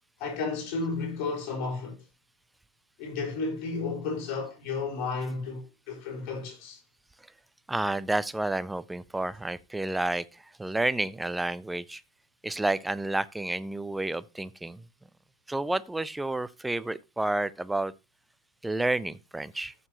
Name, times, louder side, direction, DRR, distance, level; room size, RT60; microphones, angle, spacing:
voice 1, 0.2-2.0 3.0-6.8, left 4 dB, 40° left, 4.8 m, -33 dB
voice 2, 7.7-12.0 12.4-14.8 15.5-17.9 18.6-19.7, right 2 dB, 5° right, 0.5 m, -30 dB
14.0 x 6.7 x 2.9 m
figure-of-eight pair, 90°, 0 cm